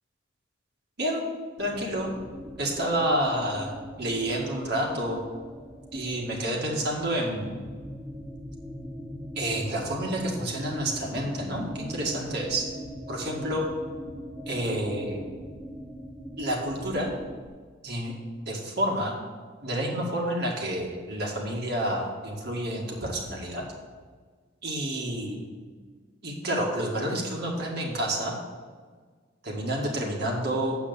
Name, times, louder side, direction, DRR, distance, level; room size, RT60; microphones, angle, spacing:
sound 1, 1.6-17.5, equal, 5° right, 0.7 m, -41 dB
voice 1, 1.6-2.1 2.6-5.2 5.9-7.5 9.4-12.7 13.1-13.7 14.5-15.2 16.4-17.1 17.8-18.2 18.5-19.1 19.6-23.6 24.6-25.4 26.2-28.3 29.4-30.8, right 1 dB, 55° right, -1 dB, 2.0 m, -29 dB
8.3 x 6.1 x 7.0 m, 1.5 s
head